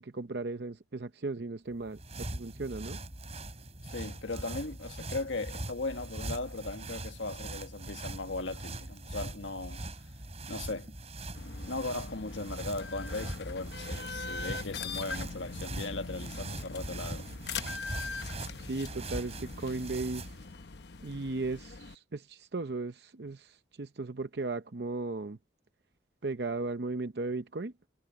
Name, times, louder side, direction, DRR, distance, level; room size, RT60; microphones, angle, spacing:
voice 1, 0.0-3.0 18.6-20.3 21.0-25.4 26.2-27.7, right 3 dB, 60° right, 0.7 m, -36 dB
sound 1, 1.7-20.5, right 2 dB, 35° right, 5.4 m, -41 dB
voice 2, 3.8-9.8 10.5-10.9 11.7-17.3, left 3 dB, 85° left, 1.5 m, -38 dB
sound 2, 11.3-21.9, left 4 dB, 65° left, 0.9 m, -42 dB
head